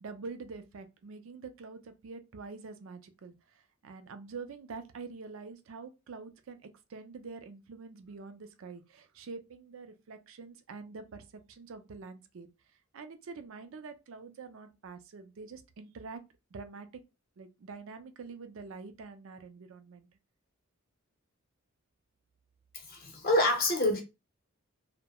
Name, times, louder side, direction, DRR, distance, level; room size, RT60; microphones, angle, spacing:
voice 1, 0.0-3.3 3.8-12.5 12.9-16.2 16.5-17.0 17.4-20.1, right 4 dB, 65° right, 0.4 m, -46 dB
voice 2, 22.7-24.0, left 1 dB, 45° left, 0.7 m, -27 dB
2.2 x 2.1 x 2.8 m
head